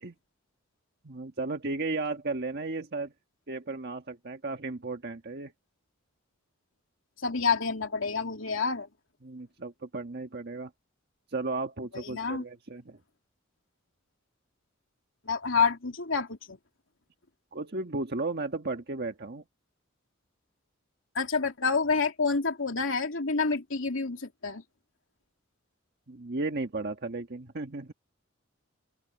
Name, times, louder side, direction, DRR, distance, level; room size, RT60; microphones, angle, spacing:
voice 1, 1.0-3.1 3.5-5.5 9.2-10.7 11.3-13.0 17.5-19.4 26.1-27.9, right 3 dB, 55° right, 1.4 m, -34 dB
voice 2, 7.2-8.9 11.9-12.4 15.2-16.6 21.1-24.6, left 4 dB, 80° left, 2.9 m, -28 dB
open air
head